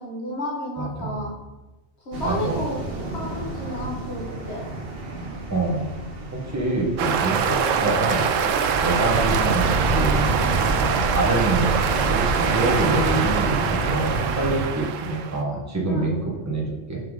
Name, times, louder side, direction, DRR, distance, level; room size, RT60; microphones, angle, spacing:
voice 1, 0.0-1.4 2.1-2.8 3.1-4.7 15.9-16.1, left 1 dB, 55° left, -2 dB, 1.8 m, -31 dB
voice 2, 0.8-1.3 2.2-2.6 5.5-5.9 6.3-10.5 11.0-11.7 12.1-17.0, right 2 dB, 15° right, -2 dB, 1.2 m, -26 dB
sound 1, 2.1-14.7, right 2 dB, 50° right, 1.2 m, -28 dB
sound 2, 7.0-15.4, right 7 dB, 75° right, 1.0 m, -24 dB
5.8 x 5.6 x 4.9 m, 1.1 s
omnidirectional pair, 1.3 m